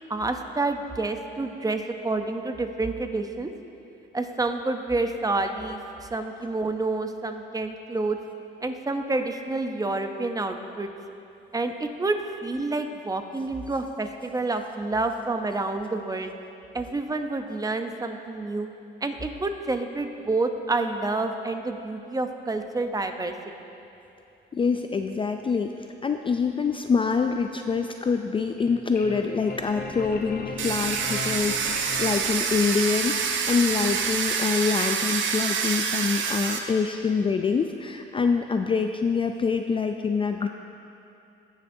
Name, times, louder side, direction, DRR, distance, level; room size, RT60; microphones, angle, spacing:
voice 1, 0.1-3.5 4.1-8.2 8.6-10.9 11.5-16.3 16.7-18.7 19.0-23.3, right 2 dB, 20° right, 6 dB, 0.7 m, -28 dB
voice 2, 24.5-40.5, left 5 dB, 25° left, 5 dB, 0.3 m, -25 dB
sound 1, 28.4-33.1, left 3 dB, 50° left, 0.9 m, -38 dB
Domestic sounds home sounds, 30.6-36.6, right 6 dB, 75° right, 0.7 m, -27 dB
17.0 x 6.3 x 2.7 m, 2.9 s
cardioid pair, 90°, 20 cm